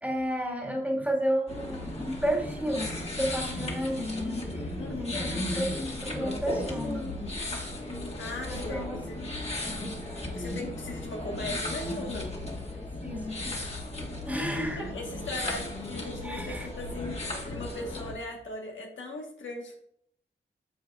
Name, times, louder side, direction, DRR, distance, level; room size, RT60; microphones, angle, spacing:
voice 1, 0.0-4.6 4.9-7.1 8.4-9.3 13.0-13.4 14.3-14.9 16.2-16.7, equal, 5° right, -2 dB, 1.9 m, -32 dB
sound 1, 1.5-18.1, left 1 dB, 35° left, 1.9 m, -35 dB
voice 2, 4.8-5.2 8.2-9.0 10.3-12.4 14.8-19.7, left 2 dB, 80° left, 1 dB, 1.4 m, -38 dB
8.6 x 7.0 x 2.4 m, 0.73 s
wide cardioid pair, 85°, 19 cm